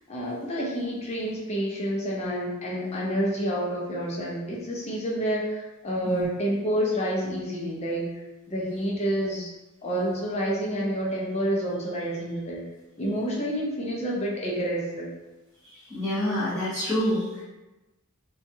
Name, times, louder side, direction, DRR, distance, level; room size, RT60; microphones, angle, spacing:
voice 1, 0.1-8.1 8.5-9.5 9.8-12.6 13.0-15.1, equal, 30° left, -4 dB, 0.5 m, -28 dB
voice 2, 15.9-17.4, equal, 10° right, -15 dB, 0.9 m, -27 dB
3.0 x 2.2 x 2.6 m, 1.1 s
head